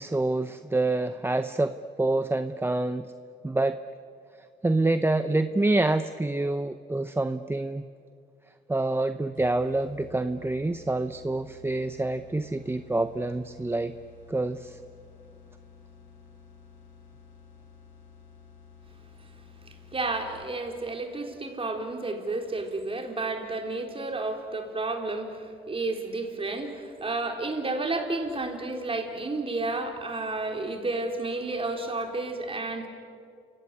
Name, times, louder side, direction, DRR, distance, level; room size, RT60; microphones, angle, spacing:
voice 1, 0.0-3.1 3.4-3.8 4.6-7.8 8.7-13.9 14.3-14.8, right 2 dB, 10° right, 10 dB, 0.7 m, -27 dB
sound 1, 9.3-20.7, left 6 dB, 85° left, 5.6 m, -52 dB
voice 2, 19.7-32.9, right 2 dB, 25° right, 4 dB, 3.9 m, -31 dB
29.5 x 17.0 x 9.9 m, 2.4 s
cardioid pair, 90°, 20 cm